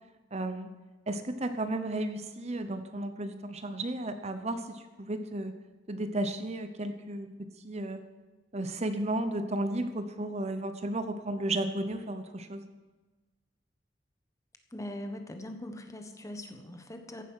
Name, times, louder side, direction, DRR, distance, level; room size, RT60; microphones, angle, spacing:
voice 1, 0.3-0.7 1.1-5.5 5.9-8.0 8.5-12.7, right 1 dB, 40° right, 9 dB, 0.9 m, -33 dB
voice 2, 14.7-17.2, left 1 dB, 20° left, 5 dB, 1.4 m, -41 dB
15.0 x 11.5 x 5.7 m, 1.2 s
head